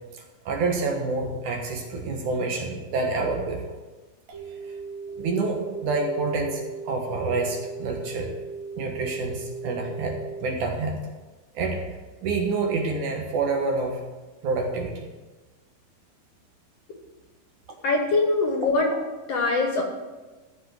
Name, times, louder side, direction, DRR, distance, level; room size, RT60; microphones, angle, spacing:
voice 1, 0.1-3.8 4.3-4.4 4.6-4.7 5.2-8.3 8.8-11.0 11.5-11.8 12.2-14.0 14.4-15.1, right 3 dB, 65° right, 1 dB, 2.7 m, -28 dB
sound 1, 4.3-10.4, right 4 dB, 25° right, 2.2 m, -37 dB
voice 2, 17.8-19.0 19.3-19.8, left 3 dB, 55° left, 1 dB, 2.2 m, -22 dB
14.5 x 5.4 x 7.9 m, 1.2 s
omnidirectional pair, 4.1 m